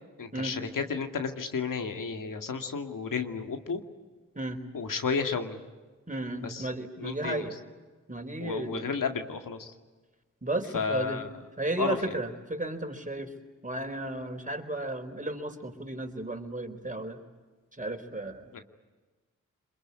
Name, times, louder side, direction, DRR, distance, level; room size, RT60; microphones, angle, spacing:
voice 1, 0.2-3.8 4.7-5.6 6.4-6.6 7.0-7.5 8.4-9.7 10.7-11.3 11.8-12.0 18.5-18.6, left 5 dB, 80° left, 6 dB, 2.3 m, -32 dB
voice 2, 6.1-7.6 8.1-8.9 10.4-11.2 11.6-13.3 13.6-17.2 17.8-18.5, right 2 dB, 25° right, 5 dB, 4.3 m, -34 dB
27.0 x 22.0 x 9.8 m, 1.3 s
cardioid pair, 45°, 32 cm